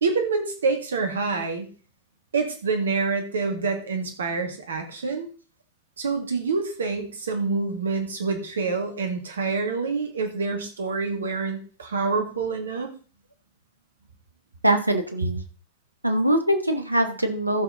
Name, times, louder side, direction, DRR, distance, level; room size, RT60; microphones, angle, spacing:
voice 1, 0.0-1.7 2.3-5.3 6.0-12.9 15.2-15.3, right 4 dB, 70° right, 5 dB, 2.2 m, -27 dB
voice 2, 14.6-15.4 16.0-17.6, right 1 dB, 85° right, 6 dB, 1.4 m, -22 dB
14.5 x 6.1 x 3.8 m, 0.39 s
figure-of-eight pair, 90°, 0 cm